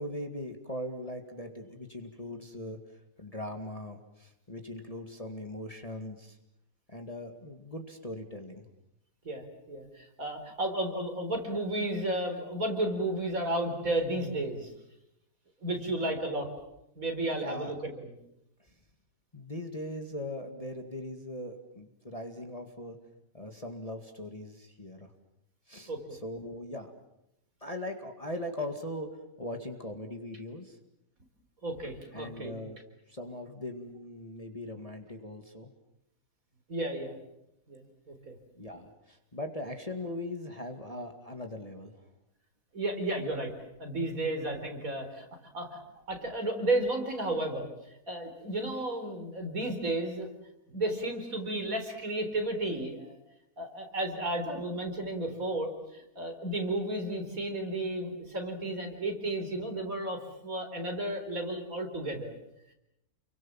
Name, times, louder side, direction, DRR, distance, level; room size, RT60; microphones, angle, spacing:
voice 1, 0.0-2.8 3.2-6.4 6.9-8.7 17.3-17.8 19.3-23.0 23.3-25.1 25.7-26.9 27.6-29.1 29.4-30.8 32.1-32.8 33.1-35.7 38.6-42.0, left 1 dB, 20° left, 4 dB, 2.2 m, -40 dB
voice 2, 9.2-14.7 15.6-16.5 17.0-18.1 25.9-26.2 31.6-32.6 36.7-37.2 37.7-37.8 38.1-38.4 42.7-43.5 43.8-45.2 45.5-45.8 46.1-47.7 48.1-50.3 50.7-53.2 53.6-62.3, right 1 dB, 55° right, 4 dB, 4.5 m, -33 dB
29.5 x 23.5 x 7.4 m, 0.84 s
omnidirectional pair, 1.7 m